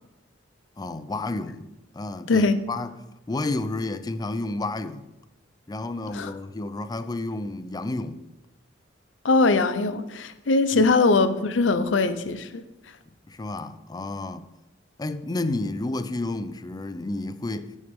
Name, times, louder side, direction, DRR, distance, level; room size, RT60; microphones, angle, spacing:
voice 1, 0.8-3.0 3.3-5.1 5.7-8.2 10.7-10.9 13.1-14.5 15.0-17.7, left 2 dB, 20° left, 0.4 m, -31 dB
voice 2, 9.2-12.6, left 3 dB, 75° left, 0.6 m, -21 dB
11.0 x 6.3 x 3.6 m
head